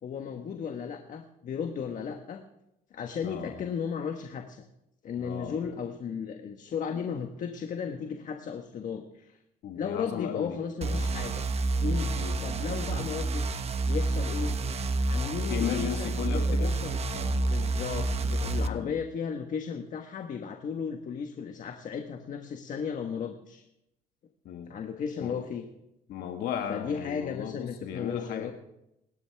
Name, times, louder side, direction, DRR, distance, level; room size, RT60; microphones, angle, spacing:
voice 1, 0.0-2.4 2.9-4.6 5.0-9.4 9.7-11.4 11.8-12.1 12.4-14.5 15.1-17.0 17.5-23.6 24.7-25.7 26.7-28.5, left 6 dB, 50° left, 5 dB, 1.4 m, -35 dB
voice 2, 3.2-3.6 5.2-5.6 9.6-10.6 10.9-11.1 12.2-12.4 14.4-14.5 15.5-16.7 17.1-17.4 18.6-18.9 24.5-24.7 25.2-25.4 26.1-28.5, left 9 dB, 70° left, 4 dB, 1.8 m, -35 dB
sound 1, 10.8-18.7, right 2 dB, 40° right, 1.1 m, -29 dB
27.5 x 12.5 x 3.5 m, 0.86 s
cardioid pair, 110°, 17 cm